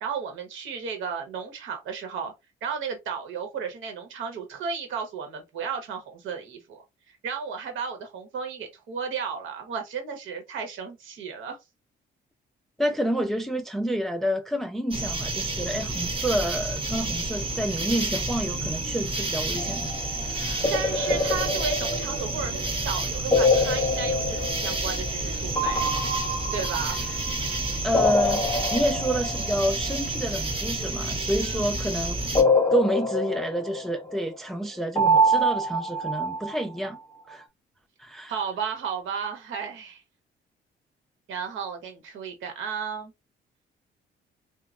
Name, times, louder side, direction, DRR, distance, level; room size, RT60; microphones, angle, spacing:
voice 1, 0.0-2.3 2.6-6.8 7.2-11.6 20.7-25.9 26.5-27.0 31.4-31.7 38.3-40.0 41.3-43.1, right 6 dB, 80° right, 1.0 m, -34 dB
voice 2, 12.8-19.9 20.2-20.7 27.8-32.1 32.7-37.0 37.3-37.4 38.0-38.3, right 1 dB, ahead, 0.4 m, -28 dB
sound 1, 14.9-32.4, right 2 dB, 25° right, 0.9 m, -30 dB
sound 2, 19.6-20.1 20.6-22.7 23.3-25.3 25.6-27.5 27.9-29.7 32.3-34.2 35.0-36.9, left 1 dB, 20° left, 1.0 m, -25 dB
3.1 x 2.1 x 2.5 m
cardioid pair, 90°, 20 cm